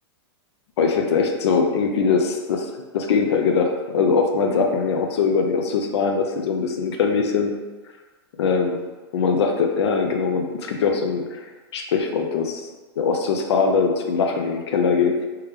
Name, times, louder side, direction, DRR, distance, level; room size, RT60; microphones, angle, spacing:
voice 1, 0.8-7.5 8.4-8.8 9.1-11.5 11.7-12.7 13.0-15.3, left 5 dB, 85° left, 3 dB, 0.5 m, -21 dB
3.3 x 2.9 x 3.4 m, 1.3 s
supercardioid pair, 170°, 14 cm